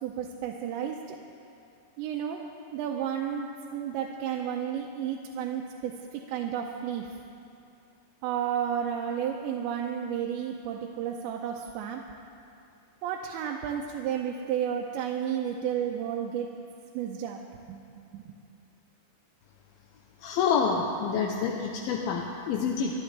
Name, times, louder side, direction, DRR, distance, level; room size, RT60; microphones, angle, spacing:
voice 1, 0.0-1.2 2.0-2.4 2.7-7.1 8.2-12.0 13.0-16.5 16.9-17.4 17.7-17.8 18.1-18.4, right 9 dB, 85° right, 0 dB, 3.0 m, -32 dB
voice 2, 20.2-22.9, left 6 dB, 75° left, 0 dB, 2.3 m, -27 dB
24.5 x 12.5 x 3.3 m, 2.6 s
omnidirectional pair, 5.1 m